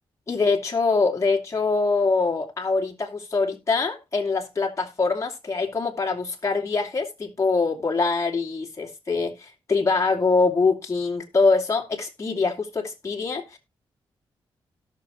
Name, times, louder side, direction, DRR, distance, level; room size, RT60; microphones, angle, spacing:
voice 1, 0.3-13.6, left 4 dB, 30° left, 2.4 m, -24 dB
17.5 x 6.3 x 3.0 m
cardioid pair, 85°, 9 cm